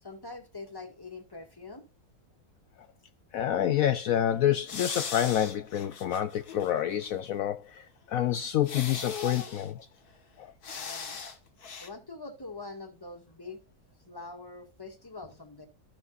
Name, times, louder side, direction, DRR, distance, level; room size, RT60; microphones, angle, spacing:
voice 1, 0.0-1.8 3.3-3.4 10.7-11.2 11.8-13.6 14.1-15.7, left 3 dB, 15° left, 2.1 m, -44 dB
voice 2, 3.3-9.9 10.4-10.5, left 11 dB, 70° left, 1.0 m, -28 dB
sound 1, 4.7-6.7 7.1-7.2 8.6-9.7 10.6-11.4 11.6-11.9, left 5 dB, 90° left, 2.2 m, -38 dB
17.5 x 6.0 x 2.5 m
omnidirectional pair, 1.6 m